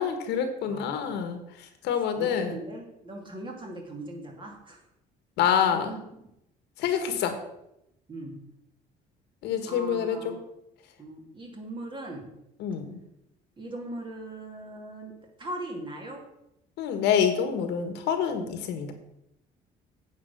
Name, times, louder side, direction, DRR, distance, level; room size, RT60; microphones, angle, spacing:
voice 1, 0.0-1.4 1.8-2.6 5.4-5.9 6.8-7.4 9.4-10.4 12.6-13.0 16.8-18.9, left 8 dB, 85° left, 7 dB, 1.4 m, -27 dB
voice 2, 0.6-1.2 2.1-4.8 5.7-6.0 8.1-8.4 9.7-10.4 11.0-12.3 13.6-15.1 15.4-16.3, right 1 dB, 30° right, 1 dB, 2.8 m, -39 dB
8.7 x 5.2 x 6.6 m, 0.82 s
cardioid pair, 110°, 17 cm